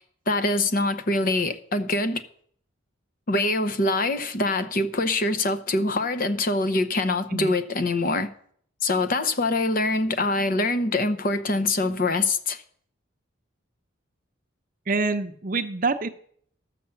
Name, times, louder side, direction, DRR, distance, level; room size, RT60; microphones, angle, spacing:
voice 1, 0.3-2.2 3.3-8.3 8.8-12.6, left 2 dB, 45° left, 0.8 m, -24 dB
voice 2, 14.9-16.1, right 3 dB, 40° right, 0.7 m, -26 dB
12.5 x 6.7 x 7.0 m
head